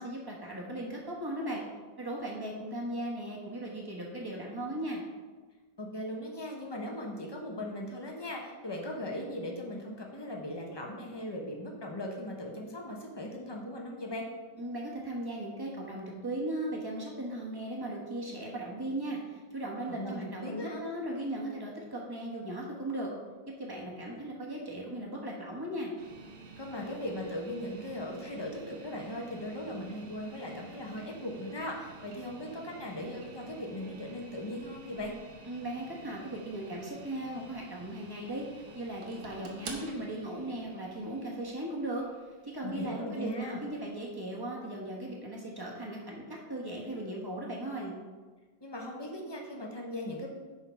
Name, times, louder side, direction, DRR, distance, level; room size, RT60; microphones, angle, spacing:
voice 1, 0.0-1.6 2.0-5.0 14.6-23.1 23.6-25.9 35.5-42.0 42.4-47.9, right 1 dB, 15° right, -3 dB, 1.1 m, -37 dB
voice 2, 5.8-14.3 19.9-20.8 26.6-35.2 42.6-43.6 48.6-50.3, left 1 dB, 35° left, -1 dB, 0.4 m, -38 dB
sound 1, 26.0-44.1, right 3 dB, 60° right, 1.4 m, -50 dB
8.9 x 3.8 x 5.7 m, 1.4 s
omnidirectional pair, 2.1 m